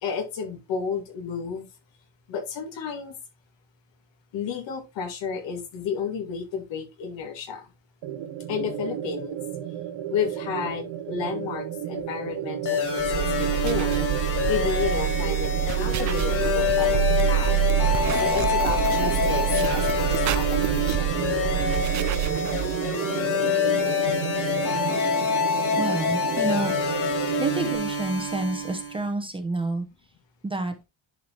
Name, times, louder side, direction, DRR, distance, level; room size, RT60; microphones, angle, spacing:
voice 1, 0.0-1.7 2.3-3.1 4.3-7.7 8.5-9.4 10.1-17.5 18.2-21.1, left 6 dB, 75° left, 5 dB, 2.4 m, -32 dB
sound 1, 8.0-27.7, right 10 dB, 80° right, 1.1 m, -32 dB
sound 2, 12.7-29.1, left 5 dB, 45° left, 3.6 m, -26 dB
sound 3, 13.0-22.9, right 12 dB, 40° right, 0.5 m, -26 dB
voice 2, 25.8-26.7 27.4-29.9 30.4-30.7, right 2 dB, 10° right, 5 dB, 0.9 m, -28 dB
10.5 x 4.8 x 2.9 m, 0.22 s
cardioid pair, 155°, 44 cm